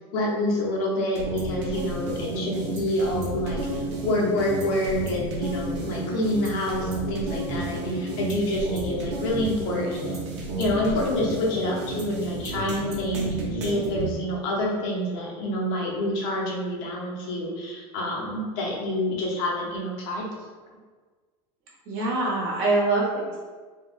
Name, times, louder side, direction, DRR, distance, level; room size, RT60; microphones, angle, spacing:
voice 1, 0.1-10.3 10.6-20.3, left 1 dB, 50° left, -2 dB, 0.7 m, -27 dB
sound 1, 1.2-14.1, right 1 dB, 85° right, 0.8 m, -31 dB
voice 2, 21.9-23.4, right 2 dB, 50° right, -5 dB, 1.0 m, -24 dB
3.4 x 2.1 x 2.4 m, 1.4 s
supercardioid pair, 160°, 14 cm